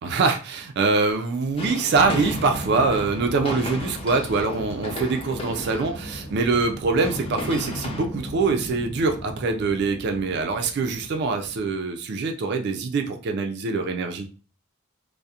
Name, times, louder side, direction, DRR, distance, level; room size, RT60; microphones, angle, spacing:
voice 1, 0.0-14.3, right 4 dB, 50° right, 5 dB, 0.3 m, -24 dB
sound 1, 1.6-8.0, left 2 dB, 25° left, 0.4 m, -35 dB
sound 2, 1.9-11.7, equal, 5° right, 0.9 m, -37 dB
2.7 x 2.0 x 2.3 m, 0.37 s
head